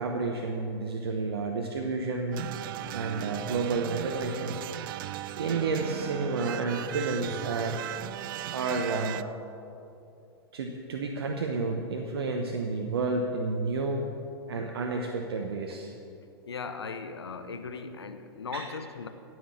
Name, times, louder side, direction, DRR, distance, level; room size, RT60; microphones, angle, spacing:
voice 1, 0.0-2.5 2.9-4.6 5.4-7.8 8.5-9.3 10.5-14.0 14.5-15.9 18.5-18.6, right 3 dB, 70° right, 2 dB, 1.1 m, -30 dB
sound 1, 2.3-9.2, right 13 dB, 55° right, 0.4 m, -37 dB
voice 2, 16.5-19.1, left 5 dB, 80° left, 9 dB, 0.8 m, -38 dB
17.0 x 6.3 x 7.4 m, 2.7 s
figure-of-eight pair, 100°, 13 cm